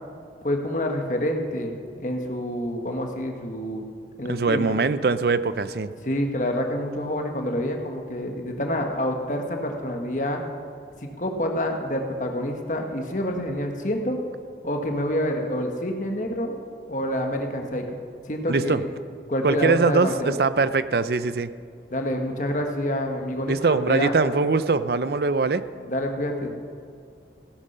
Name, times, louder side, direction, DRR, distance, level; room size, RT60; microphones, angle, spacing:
voice 1, 0.4-3.8 4.2-4.7 6.0-10.4 11.0-14.2 14.6-16.6 16.9-17.8 18.3-18.9 19.3-20.3 21.9-24.1 25.8-26.5, equal, 45° left, 3 dB, 1.4 m, -27 dB
voice 2, 4.3-5.9 18.5-18.8 19.4-21.5 23.5-25.6, right 4 dB, 60° right, 14 dB, 0.5 m, -22 dB
16.5 x 11.5 x 5.5 m, 2.4 s
head